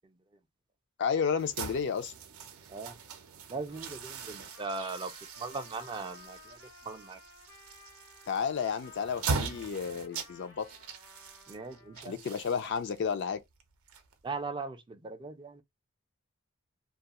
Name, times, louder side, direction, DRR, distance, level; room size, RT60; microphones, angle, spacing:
voice 1, 1.0-2.1 8.3-10.7 12.0-13.4, left 6 dB, 55° left, 0.3 m, -32 dB
sound 1, 1.4-14.5, right 5 dB, 75° right, 0.5 m, -41 dB
voice 2, 3.5-5.1 5.4-6.6 6.8-7.2 11.5-12.2 14.2-15.6, right 4 dB, 20° right, 0.3 m, -39 dB
Trumpet, 3.7-12.1, left 4 dB, 80° left, 0.9 m, -56 dB
2.3 x 2.3 x 2.8 m
head